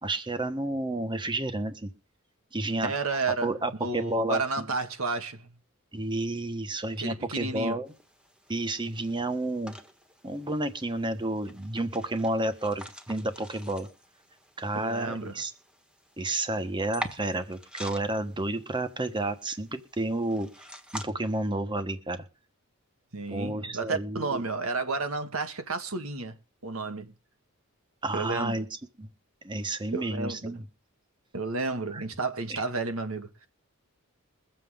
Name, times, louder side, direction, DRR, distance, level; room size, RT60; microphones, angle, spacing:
voice 1, 0.0-1.9 2.5-2.9 3.4-4.7 5.9-7.9 8.5-9.8 10.2-13.9 14.6-15.5 16.2-20.5 20.9-22.2 23.3-24.4 28.0-28.7 29.0-29.1 29.4-30.6 31.9-32.0 32.5-32.6, right 2 dB, 20° right, 1.3 m, -31 dB
voice 2, 2.8-3.5 3.8-5.5 7.0-7.8 14.8-15.3 23.1-27.1 28.1-28.6 29.9-30.5 31.3-33.5, right 3 dB, 70° right, 1.8 m, -31 dB
sound 1, 7.9-21.0, equal, 5° right, 1.4 m, -46 dB
22.5 x 7.7 x 3.7 m
head